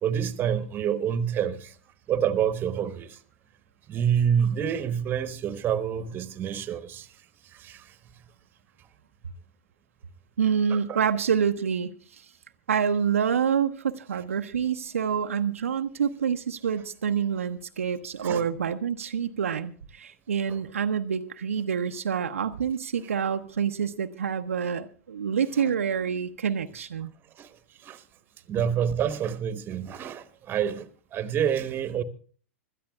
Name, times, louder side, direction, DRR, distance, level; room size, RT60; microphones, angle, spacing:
voice 1, 0.0-1.8 2.1-3.2 3.9-8.0 10.7-11.0 18.2-18.5 20.5-20.6 27.4-28.0 28.5-32.0, right 8 dB, 30° right, 1.1 m, -28 dB
voice 2, 10.4-12.2 12.7-27.1, right 7 dB, 75° right, 0.7 m, -27 dB
25.5 x 13.0 x 2.3 m
figure-of-eight pair, 100°, 7 cm